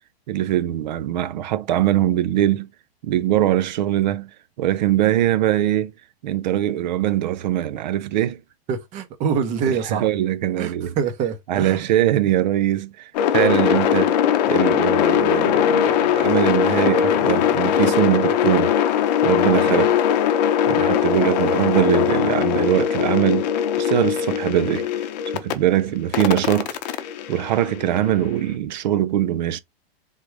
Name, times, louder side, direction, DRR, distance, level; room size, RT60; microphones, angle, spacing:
voice 1, 0.3-2.7 3.0-4.3 4.6-5.9 6.2-8.4 9.7-10.9 11.5-14.2 14.4-18.7 19.2-19.9 20.7-23.5 23.8-24.9 25.3-26.8 27.3-29.6, right 12 dB, 45° right, 0.5 m, -22 dB
voice 2, 8.7-10.1 10.6-11.8 19.5-19.9, right 6 dB, 25° right, 0.8 m, -25 dB
sound 1, 13.1-25.5 26.1-28.3, left 9 dB, 40° left, 0.7 m, -20 dB
3.8 x 3.5 x 3.2 m
hypercardioid pair, 160°, 31 cm